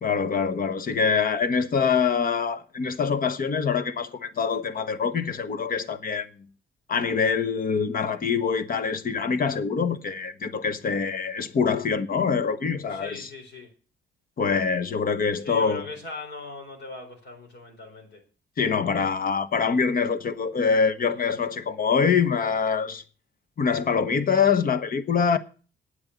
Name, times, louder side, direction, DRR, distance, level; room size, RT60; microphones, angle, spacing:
voice 1, 0.0-6.3 6.9-13.3 14.4-15.8 18.6-23.0 23.6-25.4, left 6 dB, 45° left, 1.2 m, -24 dB
voice 2, 12.9-13.7 15.4-18.2, left 3 dB, 60° left, 4.4 m, -39 dB
8.8 x 8.8 x 8.1 m
cardioid pair, 90°, 20 cm